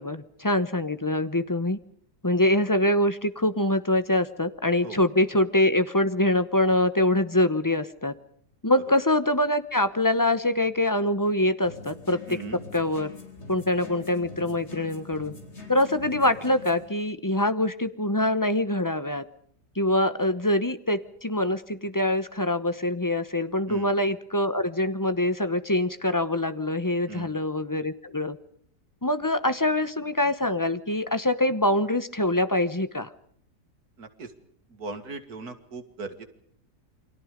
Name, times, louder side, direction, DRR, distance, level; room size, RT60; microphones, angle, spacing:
voice 1, 0.0-1.8 2.2-8.1 8.6-12.4 12.7-13.1 13.5-15.3 15.7-19.2 19.8-28.4 29.0-33.1, left 1 dB, 15° left, 12 dB, 0.7 m, -24 dB
sound 1, 11.6-16.9, left 3 dB, 40° left, 4.7 m, -44 dB
voice 2, 12.3-12.6 23.7-23.9 27.1-27.3 34.0-34.3 34.7-36.2, right 3 dB, 70° right, 9 dB, 2.6 m, -38 dB
29.0 x 24.0 x 5.2 m, 0.62 s
omnidirectional pair, 1.7 m